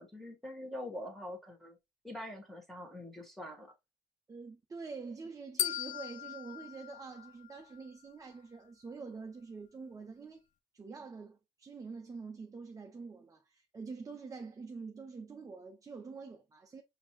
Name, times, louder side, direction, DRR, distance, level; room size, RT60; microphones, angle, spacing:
voice 1, 0.0-1.8 2.0-3.7, left 1 dB, ahead, 1.4 m, -44 dB
voice 2, 4.3-10.4 10.7-16.8, right 4 dB, 20° right, 0.6 m, -46 dB
sound 1, 5.6-7.8, left 11 dB, 50° left, 0.4 m, -38 dB
5.0 x 2.7 x 2.9 m
cardioid pair, 110°, 17 cm